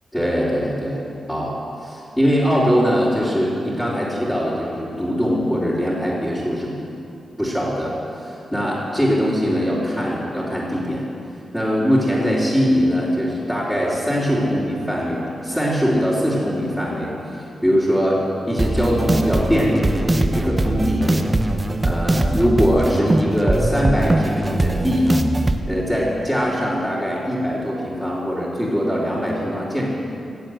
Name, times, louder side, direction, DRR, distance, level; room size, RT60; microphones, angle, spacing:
voice 1, 0.1-1.0 1.3-6.7 7.4-11.0 11.5-21.3 21.8-25.2 25.7-29.8, equal, 5° left, -10 dB, 3.4 m, -21 dB
sound 1, 18.6-25.6, right 2 dB, 25° right, 0.9 m, -21 dB
17.0 x 7.6 x 7.7 m, 2.7 s
cardioid pair, 70°, 0 cm